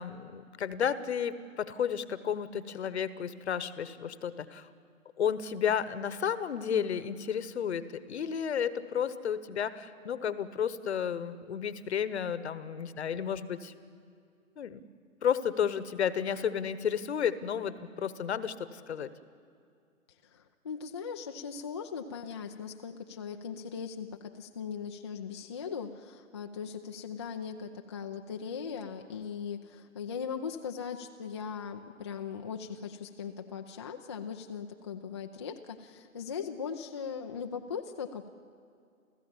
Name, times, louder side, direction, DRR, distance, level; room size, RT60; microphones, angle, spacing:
voice 1, 0.0-4.7 5.2-13.7 14.6-14.8 15.2-19.1, left 8 dB, 50° left, 15 dB, 1.1 m, -32 dB
voice 2, 20.2-38.3, left 6 dB, 20° left, 3 dB, 0.4 m, -39 dB
29.0 x 15.5 x 7.3 m, 2.4 s
figure-of-eight pair, 125°, 41 cm